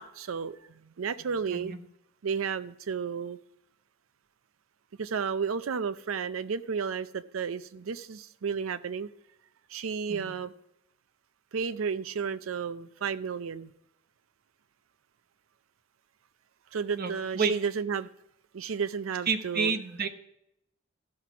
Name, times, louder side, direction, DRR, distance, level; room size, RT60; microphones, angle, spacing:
voice 1, 0.0-1.8 2.2-3.4 5.0-9.1 9.7-10.5 11.5-13.7 16.7-18.1 18.5-19.8, right 6 dB, 85° right, 14 dB, 0.5 m, -32 dB
voice 2, 17.0-17.6 19.3-20.1, right 5 dB, 50° right, 7 dB, 0.9 m, -29 dB
12.5 x 6.0 x 5.9 m, 0.79 s
head